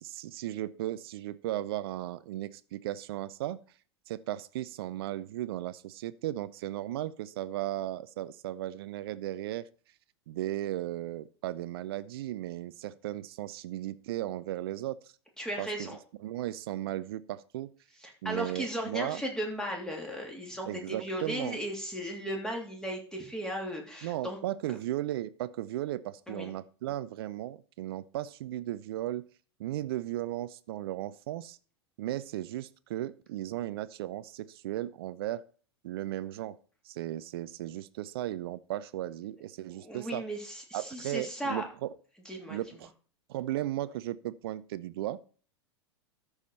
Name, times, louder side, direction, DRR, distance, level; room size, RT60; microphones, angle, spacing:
voice 1, 0.0-3.6 4.1-9.7 10.3-15.1 15.6-15.9 16.2-17.7 18.2-19.2 20.7-21.6 24.0-29.2 29.6-31.6 32.0-35.4 35.8-36.6 36.8-40.2 40.7-41.9 42.5-42.9 43.3-45.2, right 14 dB, 60° right, 15 dB, 0.5 m, -36 dB
voice 2, 15.4-16.0 18.0-24.4 24.7-24.8 26.3-26.5 39.7-41.6 42.2-42.8, equal, 5° left, 0 dB, 3.1 m, -36 dB
13.5 x 4.9 x 4.2 m, 0.41 s
figure-of-eight pair, 90°, 14 cm